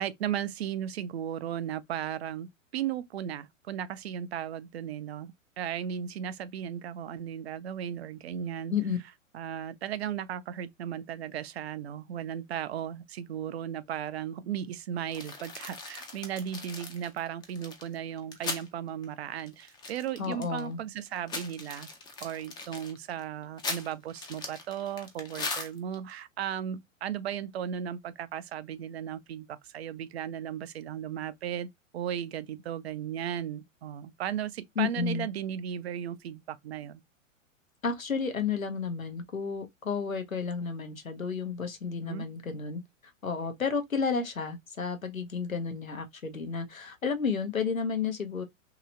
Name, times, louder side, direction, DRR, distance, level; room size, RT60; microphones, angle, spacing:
voice 1, 0.0-8.7 9.3-21.9 22.2-37.0 42.0-42.3, right 9 dB, 55° right, 0.5 m, -36 dB
sound 1, 15.1-18.7 19.0-19.1 19.4-20.7 21.1-26.1, left 3 dB, 10° left, 0.5 m, -39 dB
voice 2, 20.2-20.8 34.8-35.3 37.8-42.8 43.2-48.4, left 5 dB, 90° left, 0.9 m, -32 dB
3.0 x 2.8 x 2.6 m
figure-of-eight pair, 105°, 40 cm